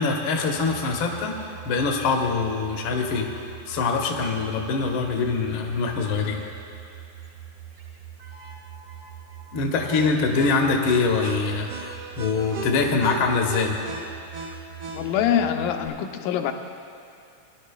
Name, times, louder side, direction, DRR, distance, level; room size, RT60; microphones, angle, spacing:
voice 1, 0.0-1.3 1.6-3.3 3.7-6.4 9.5-13.8, left 4 dB, 70° left, 1 dB, 1.2 m, -24 dB
sound 1, 0.5-15.9, right 6 dB, 60° right, 1.4 m, -40 dB
voice 2, 14.9-16.5, left 9 dB, 85° left, 5 dB, 2.2 m, -24 dB
20.5 x 11.0 x 2.3 m, 2.4 s
omnidirectional pair, 3.7 m